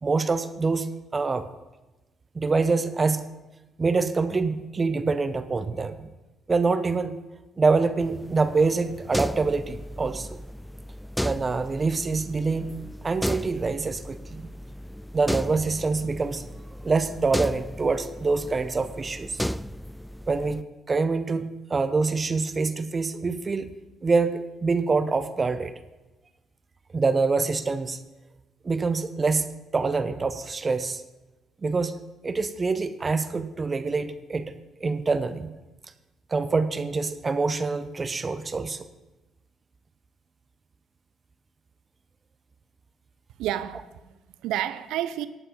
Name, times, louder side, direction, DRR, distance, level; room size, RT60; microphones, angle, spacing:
voice 1, 0.0-1.5 2.3-3.2 3.8-6.1 6.5-7.2 7.6-10.4 11.2-12.7 13.0-14.5 15.1-16.5 16.8-19.4 20.3-23.7 24.0-25.7 26.9-28.0 28.6-29.5 29.7-31.0 31.6-31.9 32.2-34.5 34.8-35.5 36.3-38.8, right 4 dB, 35° right, 0.8 m, -25 dB
sound 1, 8.0-20.6, equal, 5° left, 0.4 m, -35 dB
voice 2, 43.4-45.3, right 12 dB, 75° right, 0.6 m, -30 dB
11.5 x 8.8 x 5.2 m
hypercardioid pair, 50°, 0 cm